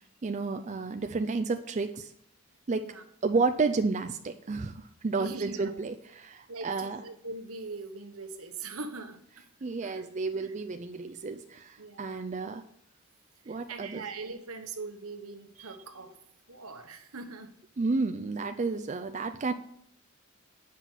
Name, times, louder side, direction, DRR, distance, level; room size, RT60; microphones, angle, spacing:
voice 1, 0.2-2.1 2.7-2.8 3.2-7.0 9.6-12.6 13.5-14.0 15.6-15.7 17.8-19.5, right 4 dB, 35° right, 7 dB, 0.4 m, -31 dB
voice 2, 2.7-3.0 5.2-5.8 6.5-9.2 9.8-10.1 10.3-10.5 11.8-12.2 13.4-16.2 16.5-17.5, right 3 dB, 75° right, 7 dB, 1.1 m, -42 dB
8.0 x 5.9 x 7.5 m, 0.70 s
head